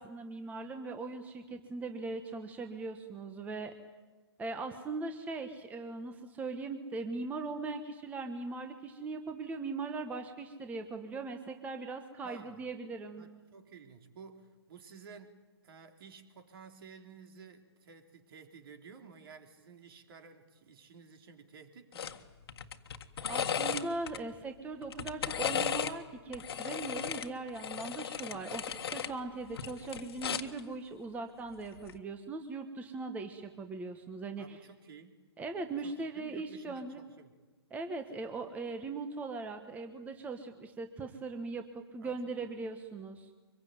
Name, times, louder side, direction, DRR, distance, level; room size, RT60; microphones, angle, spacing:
voice 1, 0.0-3.7 4.4-13.2 23.3-34.6 35.4-37.0 37.7-43.3, right 3 dB, 10° right, 7 dB, 1.3 m, -40 dB
voice 2, 12.2-12.6 13.2-15.4 15.6-22.2 28.3-28.6 34.4-35.1 35.8-37.3 42.0-42.1 42.4-42.5, right 5 dB, 55° right, 5 dB, 3.7 m, -53 dB
sound 1, 21.9-22.2 22.5-24.2 24.8-26.0 26.3-29.1 29.5-30.6 31.8-32.0, left 8 dB, 60° left, 1.7 m, -36 dB
24.5 x 22.5 x 9.4 m, 1.3 s
hypercardioid pair, 140°, 14 cm